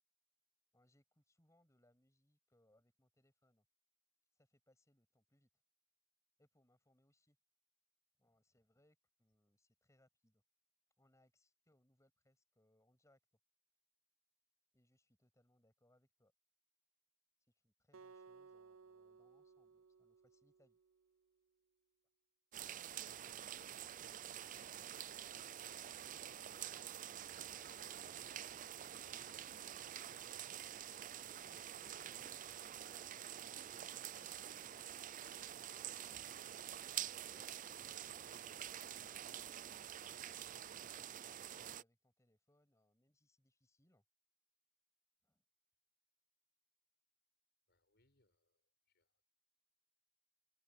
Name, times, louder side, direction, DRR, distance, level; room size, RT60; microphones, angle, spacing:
voice 1, 0.7-3.7 4.3-5.5 6.4-7.4 8.2-10.4 11.0-13.4 14.7-16.3 17.5-20.8 22.5-26.4 27.2-30.3 31.4-33.1 34.0-34.9 37.3-40.5 40.8-44.0 45.2-45.4, left 1 dB, 15° left, 7.1 m, -76 dB
Acoustic guitar, 17.9-21.2, right 5 dB, 80° right, 0.7 m, -61 dB
sound 1, 22.5-41.8, right 10 dB, 40° right, 0.4 m, -48 dB
voice 2, 47.7-49.2, left 1 dB, 50° left, 6.6 m, -81 dB
open air
head